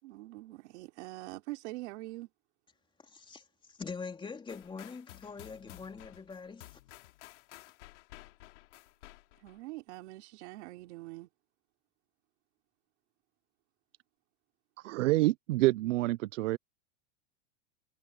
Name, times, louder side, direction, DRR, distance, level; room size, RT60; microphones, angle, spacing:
voice 1, 0.0-2.3 9.4-11.3, right 19 dB, 65° right, 3.6 m, -44 dB
voice 2, 3.0-3.4 3.7-6.7, left 5 dB, 15° left, 3.1 m, -43 dB
sound 1, 4.5-9.6, left 18 dB, 75° left, 3.2 m, -53 dB
voice 3, 14.8-16.6, right 18 dB, 80° right, 0.7 m, -27 dB
supercardioid pair, 135°, 36 cm